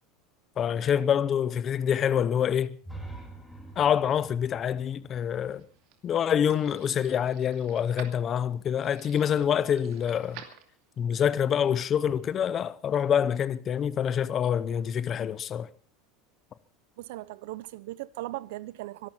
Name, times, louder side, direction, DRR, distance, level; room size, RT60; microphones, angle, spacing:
voice 1, 0.6-2.8 3.8-5.6 6.0-10.4 11.0-15.7, left 8 dB, 25° left, 0.7 m, -26 dB
sound 1, 2.8-6.7, right 2 dB, 5° left, 2.2 m, -46 dB
sound 2, 5.2-11.1, right 10 dB, 50° right, 2.5 m, -51 dB
voice 2, 17.0-19.1, right 17 dB, 65° right, 0.8 m, -38 dB
24.0 x 12.0 x 4.4 m
supercardioid pair, 175°, 0 cm